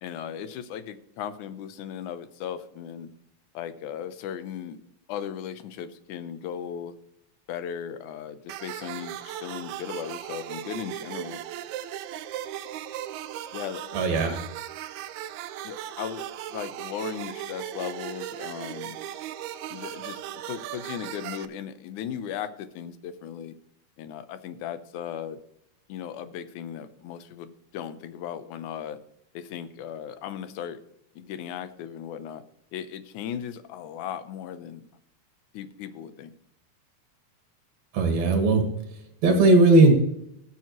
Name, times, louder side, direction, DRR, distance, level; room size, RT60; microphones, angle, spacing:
voice 1, 0.0-3.1 3.5-4.8 5.1-6.9 7.5-11.4 13.5-14.4 15.6-19.0 19.7-23.5 24.0-25.4 25.9-29.0 29.3-30.8 31.2-32.4 32.7-34.8 35.5-36.3, left 9 dB, 75° left, 11 dB, 2.1 m, -37 dB
sound 1, 8.5-21.5, right 12 dB, 80° right, 1.8 m, -37 dB
voice 2, 13.9-14.4 37.9-38.6 38.9-39.9, right 2 dB, 60° right, 3 dB, 2.7 m, -18 dB
19.5 x 7.4 x 3.0 m, 0.76 s
omnidirectional pair, 3.7 m